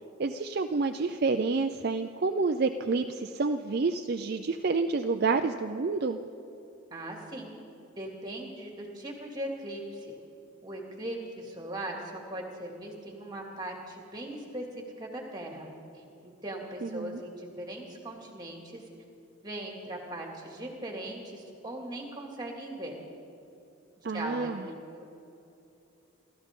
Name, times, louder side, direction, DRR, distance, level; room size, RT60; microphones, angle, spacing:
voice 1, 0.2-6.2 16.8-17.2 24.0-24.6, right 4 dB, 50° right, 6 dB, 0.5 m, -29 dB
voice 2, 6.9-7.5 8.0-10.2 10.6-12.0 12.3-15.7 15.9-18.8 19.4-23.0 24.0-25.0, right 1 dB, 20° right, 0 dB, 2.4 m, -39 dB
27.5 x 14.0 x 3.8 m, 2.8 s
head